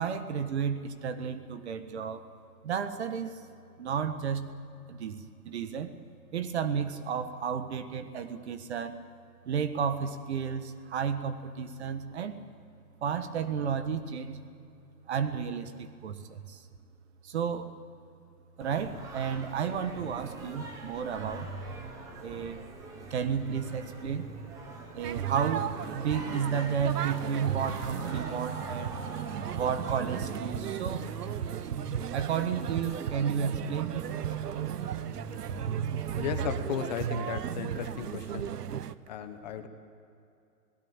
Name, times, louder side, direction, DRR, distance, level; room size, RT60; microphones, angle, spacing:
voice 1, 0.0-2.2 2.6-3.4 3.8-4.5 4.9-5.9 6.3-9.0 9.4-12.4 13.0-14.4 15.1-16.6 17.2-17.7 18.6-21.5 22.2-22.6 23.1-24.3 24.9-28.9 29.5-31.1 32.1-34.1, right 7 dB, 45° right, 10 dB, 1.5 m, -32 dB
Singing, 18.6-36.8, right 2 dB, 5° right, 0.8 m, -43 dB
sound 1, 25.0-38.9, right 9 dB, 80° right, 1.0 m, -35 dB
voice 2, 36.2-38.5 39.1-39.7, left 8 dB, 25° left, 8 dB, 1.1 m, -35 dB
26.5 x 18.0 x 8.9 m, 2.6 s
hypercardioid pair, 160°, 46 cm